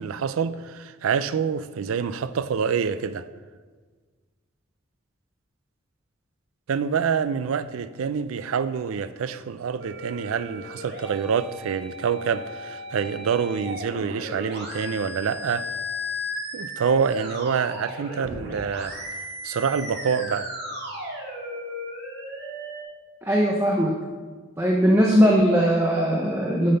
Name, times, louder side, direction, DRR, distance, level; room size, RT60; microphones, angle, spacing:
voice 1, 0.0-3.3 6.7-15.7 16.5-18.9 19.4-20.5, right 6 dB, 80° right, 0.4 m, -26 dB
sound 1, 9.8-22.8, left 1 dB, 50° right, 1.8 m, -36 dB
voice 2, 23.2-23.9 24.6-26.8, equal, 10° right, 0.6 m, -19 dB
8.5 x 5.7 x 5.5 m
head